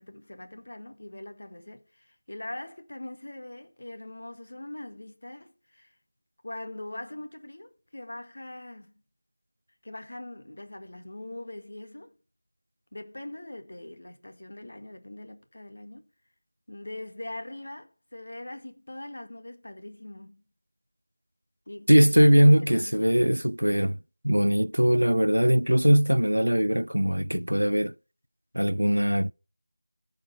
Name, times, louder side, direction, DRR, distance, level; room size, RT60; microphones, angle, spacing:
voice 1, 0.0-6.0 6.4-8.9 9.8-12.1 12.9-16.1 16.7-20.4 21.7-23.2, left 1 dB, 55° left, 1.7 m, -42 dB
voice 2, 21.9-24.0 24.2-27.9 28.5-29.3, equal, 85° right, 0.4 m, -21 dB
14.5 x 5.4 x 4.5 m
figure-of-eight pair, 170°, 0 cm